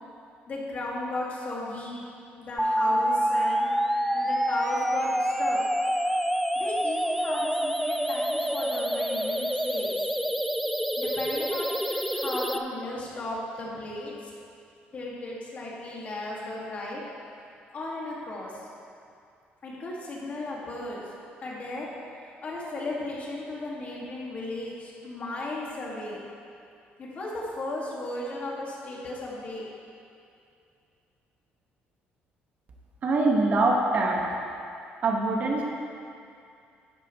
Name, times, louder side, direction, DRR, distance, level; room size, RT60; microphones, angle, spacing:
voice 1, 0.5-2.0 2.4-3.7 4.1-5.6 6.6-9.9 11.0-14.1 14.9-17.0 17.7-18.6 19.6-21.0 21.4-21.9 22.4-26.2 27.0-29.6, left 2 dB, 40° left, -4 dB, 2.1 m, -35 dB
sound 1, 2.6-12.6, equal, ahead, 0.4 m, -27 dB
voice 2, 33.0-34.3 35.0-35.6, right 2 dB, 45° right, -1 dB, 1.6 m, -23 dB
11.5 x 9.3 x 3.2 m, 2.5 s
cardioid pair, 135°, 4 cm